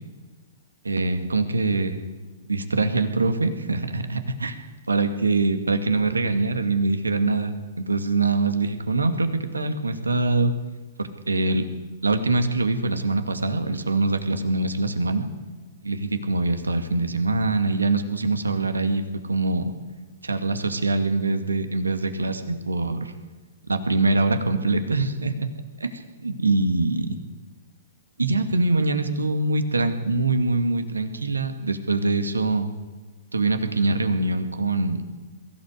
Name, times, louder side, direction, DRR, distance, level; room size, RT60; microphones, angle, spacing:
voice 1, 0.8-2.0 2.5-4.6 4.9-10.5 11.0-11.6 12.0-15.3 15.8-19.0 19.3-19.7 20.2-23.0 23.7-25.5 25.8-27.2 28.2-32.7 33.3-35.0, right 3 dB, 85° right, 8 dB, 2.3 m, -23 dB
22.5 x 15.5 x 8.2 m, 1.4 s
figure-of-eight pair, 115°, 0 cm